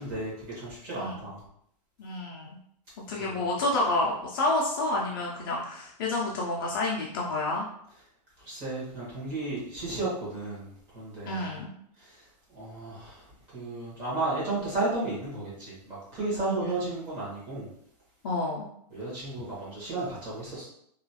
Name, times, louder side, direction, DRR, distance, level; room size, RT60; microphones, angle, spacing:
voice 1, 0.0-1.4 3.2-3.4 8.4-11.6 12.0-17.7 18.9-20.7, right 2 dB, 30° right, -8 dB, 1.4 m, -34 dB
voice 2, 2.0-2.5 3.1-7.7 11.3-11.7 16.3-16.5 18.2-18.7, left 2 dB, 35° left, -3 dB, 0.3 m, -29 dB
3.0 x 2.3 x 2.7 m, 0.71 s
supercardioid pair, 170°, 21 cm